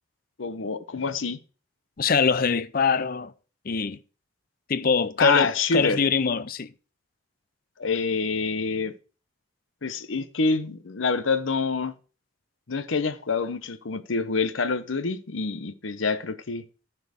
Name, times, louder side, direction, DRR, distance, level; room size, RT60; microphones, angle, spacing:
voice 1, 0.4-1.4 5.2-6.0 7.8-8.9 9.8-11.9 12.7-16.6, left 4 dB, 75° left, 0.8 m, -26 dB
voice 2, 2.0-3.3 3.7-4.0 4.7-6.7, left 5 dB, 45° left, 0.5 m, -23 dB
10.5 x 4.6 x 6.4 m
head